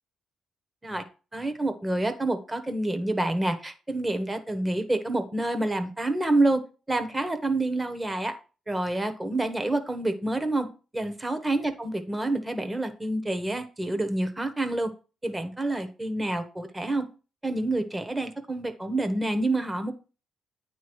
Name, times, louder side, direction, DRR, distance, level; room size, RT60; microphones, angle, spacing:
voice 1, 1.3-6.6 6.9-8.3 8.7-10.7 10.9-14.9 15.2-17.1 17.4-19.9, right 2 dB, 15° right, 8 dB, 1.2 m, -28 dB
9.3 x 3.1 x 6.2 m, 0.34 s
cardioid pair, 90°, 0 cm